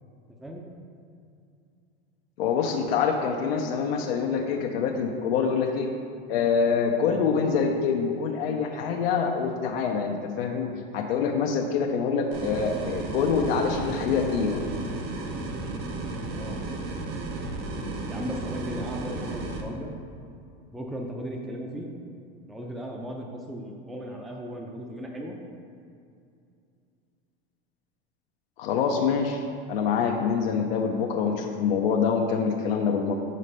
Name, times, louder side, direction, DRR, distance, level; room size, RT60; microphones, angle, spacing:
voice 1, 2.4-5.9 6.3-14.6 28.6-29.4 29.7-33.1, left 6 dB, 90° left, 1 dB, 0.6 m, -25 dB
sound 1, 12.3-19.6, right 2 dB, 85° right, 0.9 m, -33 dB
voice 2, 16.0-16.6 18.1-19.9 20.7-21.9 22.5-25.4, equal, ahead, 0 dB, 0.4 m, -37 dB
6.5 x 3.2 x 5.3 m, 2.4 s
supercardioid pair, 125°, 29 cm